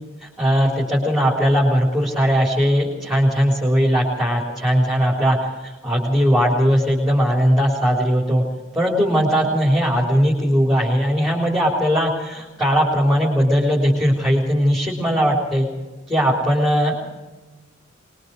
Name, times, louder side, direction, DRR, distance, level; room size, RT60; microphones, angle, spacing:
voice 1, 0.2-8.4 8.7-15.7 16.1-17.0, equal, 5° right, -5 dB, 4.0 m, -19 dB
24.5 x 22.0 x 4.9 m, 1.2 s
head